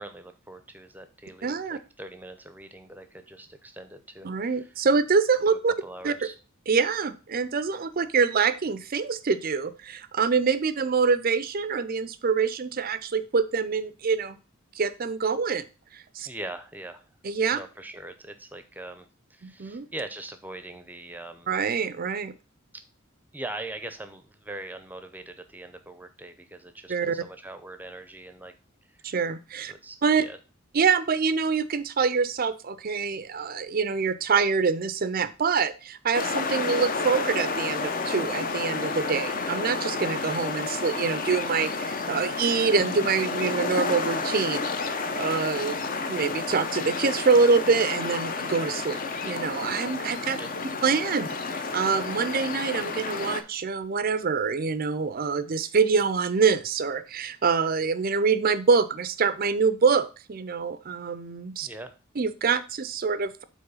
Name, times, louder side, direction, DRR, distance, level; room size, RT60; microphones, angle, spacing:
voice 1, 0.0-4.7 5.5-6.3 16.2-17.0 17.5-21.5 22.7-22.8 23.3-28.5 28.9-29.0 29.7-30.4 50.4-50.5 61.6-61.9, right 2 dB, 10° right, 9 dB, 0.7 m, -41 dB
voice 2, 1.4-1.8 4.2-5.7 6.0-6.1 6.7-14.4 14.7-15.7 15.9-16.3 17.2-17.6 19.4-19.9 21.5-22.3 26.9-27.2 29.0-29.7 30.0-30.2 30.7-44.7 45.1-45.8 46.1-50.4 50.8-61.7 62.2-63.4, right 5 dB, 45° right, 14 dB, 0.5 m, -25 dB
sound 1, 36.1-53.4, left 4 dB, 40° left, 0.8 m, -31 dB
7.8 x 3.2 x 5.5 m, 0.33 s
head